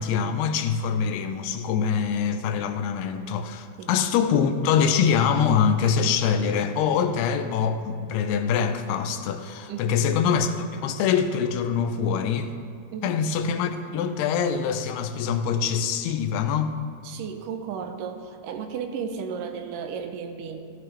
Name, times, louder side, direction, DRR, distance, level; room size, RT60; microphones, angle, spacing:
voice 1, 0.0-12.5 13.0-16.8, left 7 dB, 90° left, 2.7 m, -24 dB
voice 2, 17.0-20.7, right 6 dB, 80° right, 2.0 m, -34 dB
16.0 x 12.5 x 3.3 m
omnidirectional pair, 4.6 m